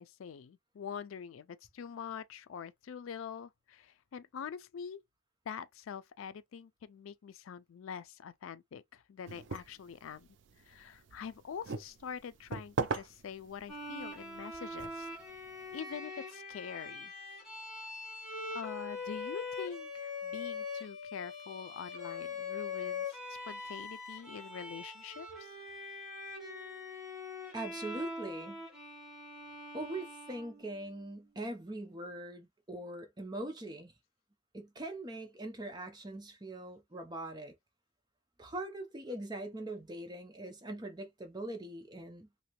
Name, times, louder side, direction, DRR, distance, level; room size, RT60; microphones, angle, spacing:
voice 1, 0.0-5.0 5.5-10.3 10.6-15.1 15.7-17.1 18.5-23.2 23.5-25.3, left 7 dB, 85° left, 0.4 m, -45 dB
sound 1, 9.3-15.8, right 4 dB, 65° right, 0.4 m, -42 dB
Bowed string instrument, 13.7-31.1, left 4 dB, ahead, 1.2 m, -43 dB
voice 2, 27.5-28.6 29.7-33.9 34.5-37.5 38.4-42.4, right 1 dB, 20° right, 0.6 m, -42 dB
2.8 x 2.7 x 3.0 m
head